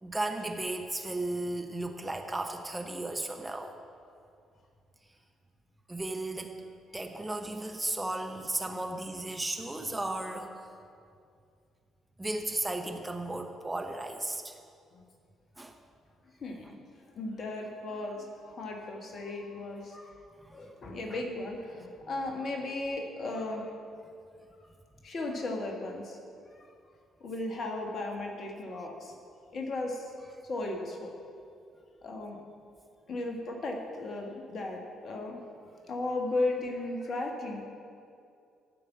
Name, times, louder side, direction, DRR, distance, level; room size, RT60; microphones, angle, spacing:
voice 1, 0.0-3.7 5.9-6.6 6.9-10.7 12.2-14.6 15.6-15.8 20.4-20.6 21.1-21.2 28.7-28.9, right 2 dB, 15° right, 4 dB, 0.9 m, -35 dB
voice 2, 16.4-16.7 17.1-20.1 20.5-23.7 25.0-26.2 27.2-29.1 29.5-30.1 30.5-31.1 32.0-32.4 33.1-35.4 35.9-37.6, left 2 dB, 45° left, 2 dB, 1.7 m, -35 dB
13.5 x 5.3 x 7.3 m, 2.4 s
figure-of-eight pair, 45°, 0 cm